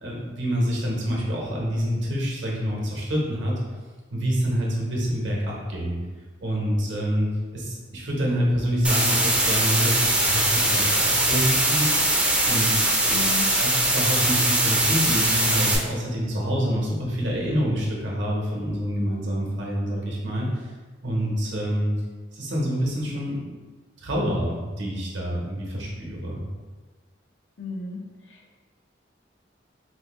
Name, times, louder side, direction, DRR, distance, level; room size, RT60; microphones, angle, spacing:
voice 1, 0.0-3.6 4.1-6.0 6.4-11.9 12.4-20.7 21.0-21.9 22.3-23.5 24.0-26.4, equal, 75° right, -3 dB, 0.9 m, -27 dB
sound 1, 8.8-15.8, right 1 dB, 5° right, 0.4 m, -21 dB
voice 2, 13.1-13.5 27.6-28.6, left 4 dB, 75° left, 0 dB, 0.6 m, -34 dB
4.4 x 2.1 x 3.0 m, 1.4 s
head